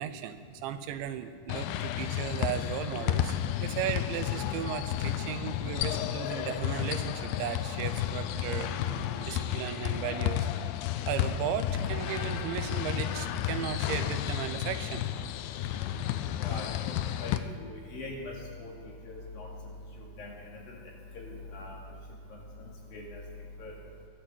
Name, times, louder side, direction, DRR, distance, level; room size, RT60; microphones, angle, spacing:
voice 1, 0.0-8.7 9.3-10.5 11.1-15.1, right 10 dB, 85° right, 10 dB, 3.1 m, -36 dB
sound 1, 1.5-17.4, left 11 dB, 85° left, 2.2 m, -32 dB
sound 2, 8.1-18.6, right 4 dB, 60° right, 2.9 m, -51 dB
voice 2, 16.4-17.0 17.2-18.7 19.0-19.5 20.0-20.8 21.1-21.8 22.6-23.2 23.6-23.7, left 2 dB, 55° left, -2 dB, 3.9 m, -42 dB
22.5 x 13.0 x 4.5 m, 2.2 s
omnidirectional pair, 5.2 m